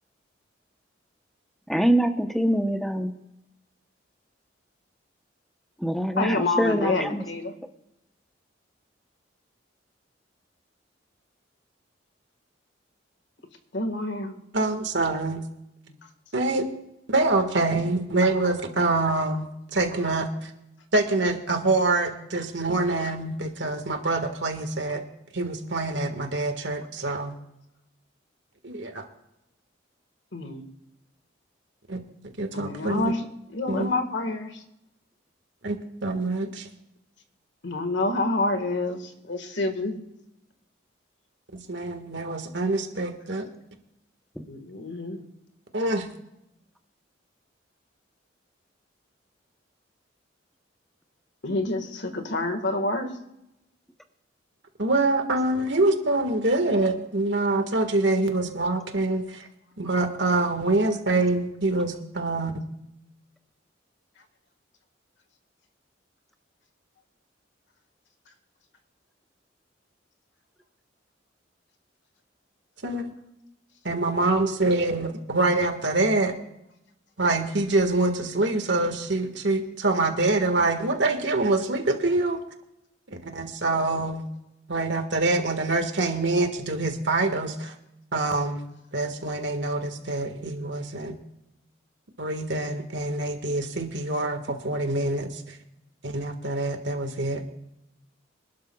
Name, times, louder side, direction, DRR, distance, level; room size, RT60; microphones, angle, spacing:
voice 1, 1.7-3.1 5.8-7.2, right 1 dB, ahead, 6 dB, 0.8 m, -24 dB
voice 2, 6.1-7.5 13.7-14.4 30.3-30.6 32.5-33.2 33.5-34.6 37.6-40.0 44.4-45.3 51.4-53.2, left 2 dB, 70° left, 6 dB, 1.7 m, -28 dB
voice 3, 14.5-15.4 16.3-16.7 17.1-20.5 20.9-25.0 25.3-27.3 28.6-29.0 31.9-32.0 32.4-33.1 33.7-33.9 35.6-36.7 41.7-43.5 45.7-46.1 54.8-59.5 59.8-62.5 72.8-73.1 73.8-76.3 77.2-82.4 83.2-84.2 84.7-87.7 88.1-88.6 88.9-91.2 92.2-95.6 96.0-97.4, right 2 dB, 70° right, 5 dB, 1.7 m, -25 dB
25.5 x 12.0 x 2.3 m, 0.86 s
head